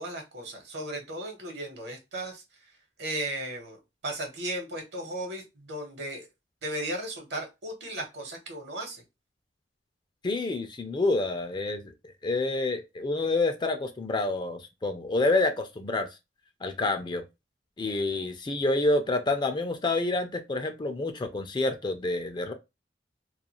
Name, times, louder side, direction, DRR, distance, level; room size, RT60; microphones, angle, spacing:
voice 1, 0.0-2.4 3.0-6.3 6.6-9.0, right 1 dB, 65° right, 1.0 m, -36 dB
voice 2, 10.2-11.9 12.2-16.1 16.6-17.2 17.8-22.5, left 2 dB, 25° left, 0.4 m, -28 dB
2.4 x 2.3 x 2.9 m
head